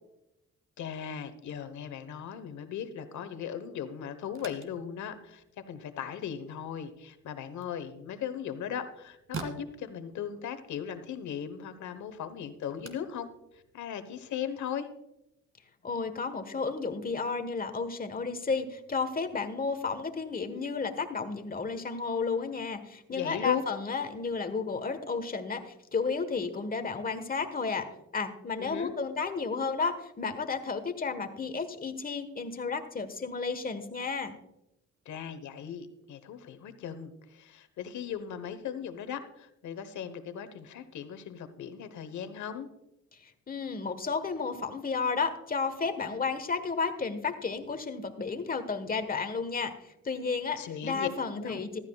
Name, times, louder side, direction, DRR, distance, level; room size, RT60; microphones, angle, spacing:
voice 1, 0.8-13.3 13.5-14.9 23.1-23.6 28.6-28.9 35.0-42.7 50.6-51.1 51.4-51.6, left 8 dB, 70° left, 11 dB, 1.2 m, -38 dB
sound 1, 4.2-14.7, right 4 dB, 45° right, 2.0 m, -49 dB
voice 2, 15.8-27.8 28.1-34.3 43.2-49.7 50.0-51.7, left 4 dB, 30° left, 8 dB, 1.3 m, -32 dB
15.0 x 12.5 x 2.3 m, 0.86 s
cardioid pair, 90°, 30 cm